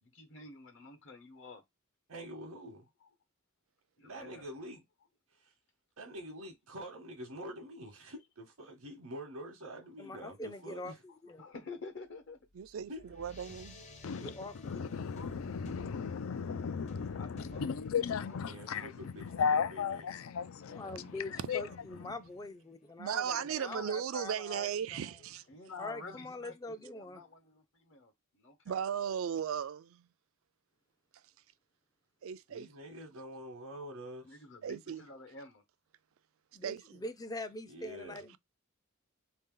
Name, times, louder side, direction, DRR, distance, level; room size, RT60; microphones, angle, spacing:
voice 1, 0.0-1.6 3.0-3.1 4.0-4.5 7.8-7.9 10.6-10.8 11.1-12.4 14.1-14.4 14.8-15.0 17.2-17.8 18.2-18.9 21.3-21.8 23.5-23.9 24.9-28.8 34.2-35.6, left 3 dB, 60° left, 1.1 m, -50 dB
voice 2, 2.1-2.9 4.0-4.8 5.3-5.5 6.0-11.0 12.9-13.0 18.4-20.1 32.5-34.4 37.7-38.2, equal, 90° right, 1.0 m, -46 dB
voice 3, 10.0-11.4 14.2-14.8 20.7-23.4 23.6-25.0 25.8-27.2 36.5-38.4, left 2 dB, 15° left, 0.4 m, -43 dB
sound 1, 12.1-22.8, left 1 dB, 35° left, 0.8 m, -55 dB
voice 4, 12.6-13.8 23.0-25.4 28.7-30.1 32.2-32.7 34.6-35.0 36.6-37.0, right 8 dB, 70° right, 0.4 m, -36 dB
voice 5, 14.6-21.6 21.9-22.2, left 6 dB, 75° left, 0.4 m, -35 dB
3.6 x 2.8 x 3.7 m
head